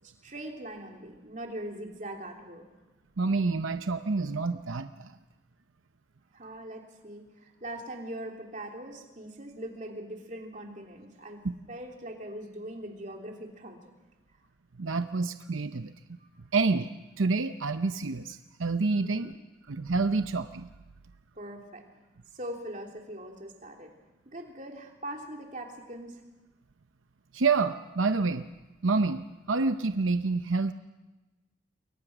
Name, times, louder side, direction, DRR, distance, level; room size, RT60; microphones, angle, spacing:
voice 1, 0.0-2.7 6.3-13.8 16.2-16.3 19.0-19.3 21.4-21.8 22.3-23.9 24.2-26.2, right 1 dB, 40° right, 2 dB, 3.1 m, -41 dB
voice 2, 3.2-5.1 14.8-16.2 16.5-19.3 19.7-20.7 27.3-28.5 28.8-30.7, right 3 dB, 85° right, 9 dB, 0.8 m, -28 dB
28.5 x 22.5 x 6.1 m, 1.1 s
head